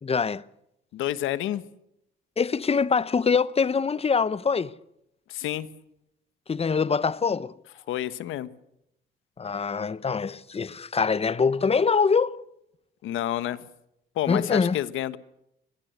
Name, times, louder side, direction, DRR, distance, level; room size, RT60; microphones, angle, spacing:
voice 1, 0.0-0.4 2.4-4.7 6.5-7.5 9.4-12.4 14.3-14.8, left 5 dB, 30° left, 0.9 m, -24 dB
voice 2, 0.9-1.6 5.3-5.7 7.9-8.5 13.0-13.6 14.1-15.2, left 12 dB, 85° left, 1.3 m, -29 dB
25.0 x 20.0 x 8.1 m
cardioid pair, 90°, 20 cm